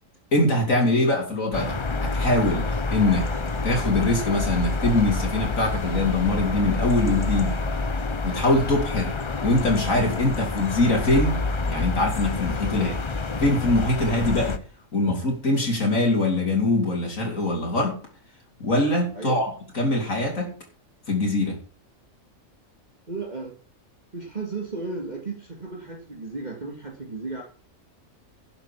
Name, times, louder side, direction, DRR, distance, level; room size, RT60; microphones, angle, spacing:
voice 1, 0.3-3.3 3.6-7.6 8.2-11.4 11.7-12.9 13.4-14.6 14.9-18.0 18.6-19.5 19.7-20.6 21.1-21.6, left 2 dB, 75° left, 0 dB, 3.7 m, -23 dB
sound 1, 1.5-14.6, left 3 dB, 30° left, 0.7 m, -28 dB
voice 2, 23.1-23.5 24.1-27.4, right 3 dB, 30° right, -1 dB, 2.3 m, -34 dB
11.0 x 7.1 x 7.3 m, 0.41 s
omnidirectional pair, 1.4 m